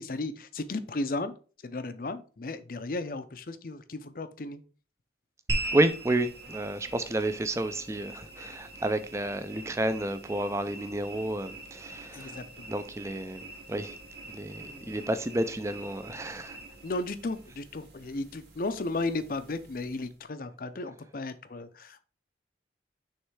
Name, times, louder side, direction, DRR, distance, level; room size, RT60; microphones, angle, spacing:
voice 1, 0.0-1.3 1.6-4.6 12.1-12.7 16.8-22.0, left 2 dB, 50° left, 0.5 m, -35 dB
sound 1, 5.5-20.1, right 1 dB, 60° right, 2.7 m, -41 dB
voice 2, 5.7-12.3 12.7-13.9 14.3-16.6, right 1 dB, 15° right, 0.5 m, -30 dB
6.5 x 3.2 x 4.7 m
head